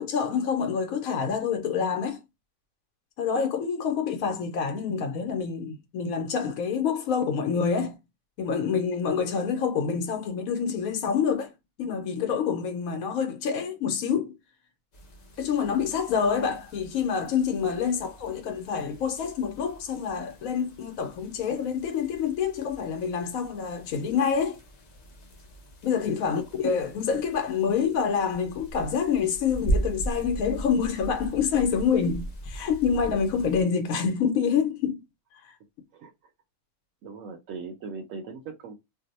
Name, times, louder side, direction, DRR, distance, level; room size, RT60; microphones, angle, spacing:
voice 1, 0.0-2.2 3.2-8.0 8.4-11.5 11.8-14.3 15.4-24.6 25.8-35.0 35.4-35.5, left 6 dB, 80° left, 1.1 m, -27 dB
sound 1, 14.9-33.6, right 1 dB, 45° left, 0.6 m, -38 dB
voice 2, 37.0-38.8, right 4 dB, 70° right, 0.9 m, -40 dB
2.6 x 2.0 x 3.9 m
omnidirectional pair, 1.5 m